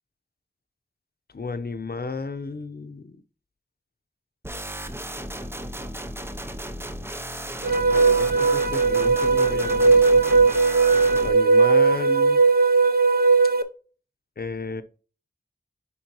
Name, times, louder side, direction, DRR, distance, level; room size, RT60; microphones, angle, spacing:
voice 1, 1.3-3.2 7.9-10.4 11.2-12.4 14.4-14.8, left 3 dB, 60° left, 0.8 m, -33 dB
sound 1, 4.4-11.3, equal, 15° right, 0.7 m, -34 dB
sound 2, 7.6-13.6, right 4 dB, 60° right, 0.7 m, -18 dB
10.0 x 4.0 x 3.0 m
wide cardioid pair, 75°, 18 cm